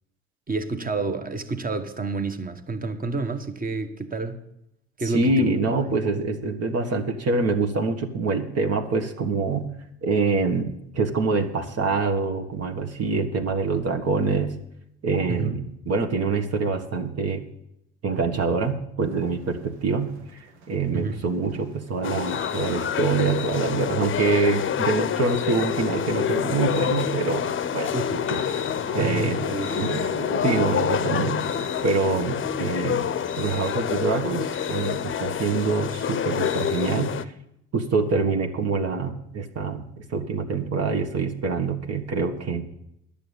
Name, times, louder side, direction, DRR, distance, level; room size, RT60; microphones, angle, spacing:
voice 1, 0.5-4.4 5.0-5.5 15.3-15.6 20.9-21.2 27.9-28.1 29.0-29.7, right 3 dB, 25° right, 1.4 m, -29 dB
voice 2, 5.0-9.7 10.0-14.5 15.0-17.4 18.0-28.4 28.9-29.4 29.8-31.4 31.8-33.1 33.4-37.3 37.7-42.6, right 4 dB, 50° right, 1.6 m, -25 dB
sound 1, 19.0-33.9, right 4 dB, 85° right, 1.2 m, -40 dB
sound 2, 22.0-37.2, left 8 dB, 40° left, 0.7 m, -27 dB
11.0 x 7.0 x 9.0 m
hypercardioid pair, 55°, 31 cm